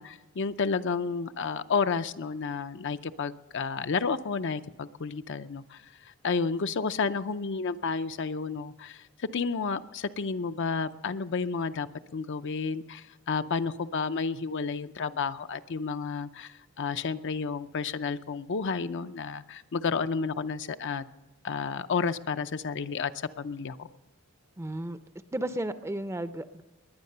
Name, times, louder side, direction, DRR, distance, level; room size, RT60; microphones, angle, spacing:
voice 1, 0.0-9.0 9.3-11.9 12.1-21.1 21.4-23.1 23.4-23.9, left 5 dB, 55° left, 11 dB, 0.5 m, -31 dB
voice 2, 24.6-25.0 25.3-26.6, right 1 dB, 15° right, 11 dB, 0.5 m, -33 dB
20.0 x 10.0 x 6.7 m, 1.1 s
head